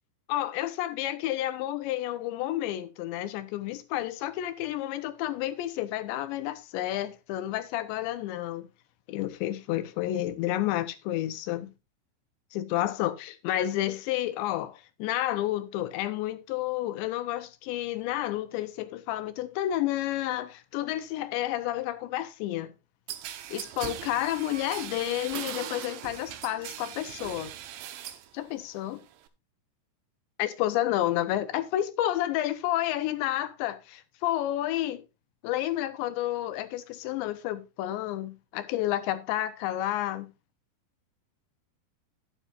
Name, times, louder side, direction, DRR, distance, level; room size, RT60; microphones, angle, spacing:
voice 1, 0.3-8.7 9.1-11.7 12.5-22.7 23.5-27.5 28.3-29.0 30.4-35.0 35.4-40.3, left 13 dB, 80° left, 3.2 m, -30 dB
sound 1, 23.1-28.3 28.6-29.3, right 11 dB, 85° right, 3.4 m, -40 dB
12.0 x 10.5 x 2.6 m
omnidirectional pair, 5.2 m